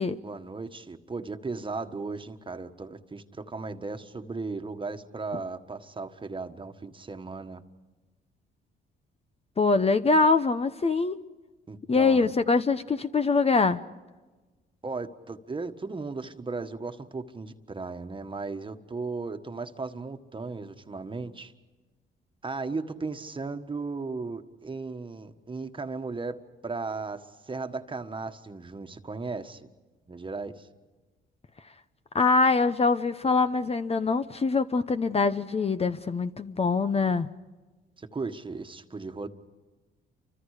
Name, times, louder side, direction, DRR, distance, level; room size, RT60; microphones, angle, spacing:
voice 1, 0.2-7.6 11.7-12.3 14.8-21.5 22.4-29.6 30.1-30.7 38.0-39.3, right 3 dB, 25° right, 7 dB, 1.5 m, -36 dB
voice 2, 9.6-11.2 11.9-13.8 32.1-37.3, left 4 dB, 30° left, 10 dB, 0.8 m, -23 dB
29.5 x 25.0 x 5.0 m, 1.2 s
cardioid pair, 90°, 20 cm